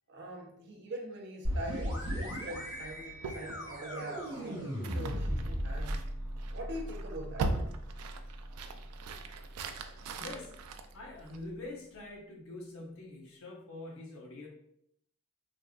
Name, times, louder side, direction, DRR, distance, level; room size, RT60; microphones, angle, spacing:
voice 1, 0.1-6.0 6.5-7.5, right 1 dB, 50° right, -1 dB, 0.6 m, -43 dB
sound 1, 1.4-11.0, equal, 20° right, 1.2 m, -38 dB
sound 2, 3.2-11.7, right 3 dB, 90° right, 0.3 m, -41 dB
voice 2, 10.2-10.5 10.9-14.5, left 2 dB, 65° left, -2 dB, 0.8 m, -45 dB
3.3 x 2.4 x 2.4 m, 0.73 s
head